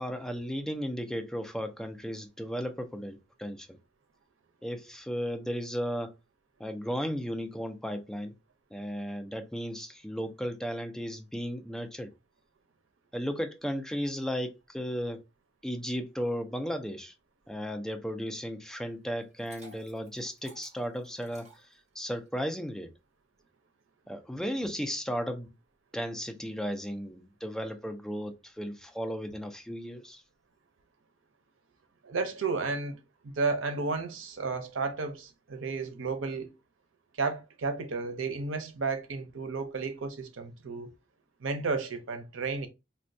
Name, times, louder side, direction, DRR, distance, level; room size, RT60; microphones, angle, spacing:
voice 1, 0.0-3.7 4.6-6.1 6.6-8.3 8.7-12.1 13.1-15.2 15.6-17.1 17.5-21.5 22.0-22.9 24.1-25.5 25.9-30.2, equal, 5° left, 0.4 m, -35 dB
Liquid, 19.2-22.3, right 1 dB, 35° right, 1.2 m, -55 dB
voice 2, 32.0-36.5 37.2-40.9 41.4-42.7, right 4 dB, 90° right, 0.6 m, -33 dB
4.3 x 2.2 x 2.5 m
head